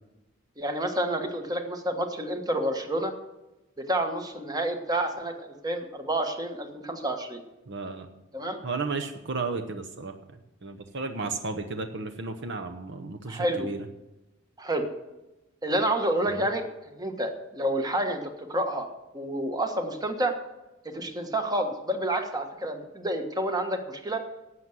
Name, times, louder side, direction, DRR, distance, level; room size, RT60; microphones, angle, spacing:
voice 1, 0.6-3.1 3.8-7.4 8.3-8.6 13.3-13.7 14.6-14.9 15.6-20.3 20.8-24.2, right 1 dB, 20° right, 6 dB, 1.3 m, -29 dB
voice 2, 7.7-8.1 8.6-10.2 10.6-13.9 16.3-16.5, right 3 dB, 65° right, 6 dB, 0.9 m, -33 dB
11.5 x 7.9 x 7.8 m, 1.0 s
head